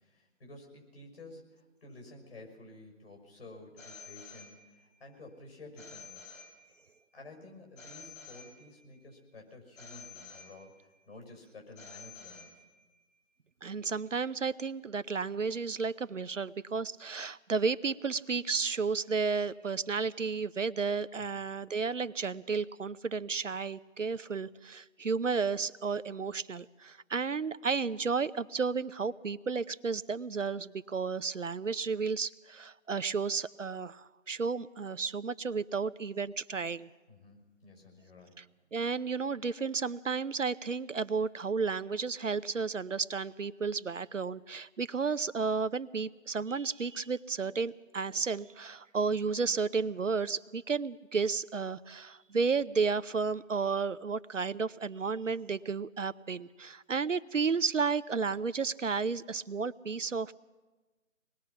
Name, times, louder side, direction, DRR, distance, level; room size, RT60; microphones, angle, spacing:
voice 1, 0.0-6.3 7.1-12.5 21.2-21.5 37.1-38.5, left 2 dB, 45° left, 2 dB, 6.4 m, -52 dB
Telephone, 3.8-5.0 5.8-7.0 7.8-9.0 9.8-11.0 11.8-13.0, left 5 dB, 70° left, 5.8 m, -51 dB
voice 2, 13.6-36.9 38.7-60.3, right 5 dB, 65° right, 14 dB, 0.7 m, -32 dB
25.0 x 20.0 x 5.9 m, 1.2 s
figure-of-eight pair, 160°, 40 cm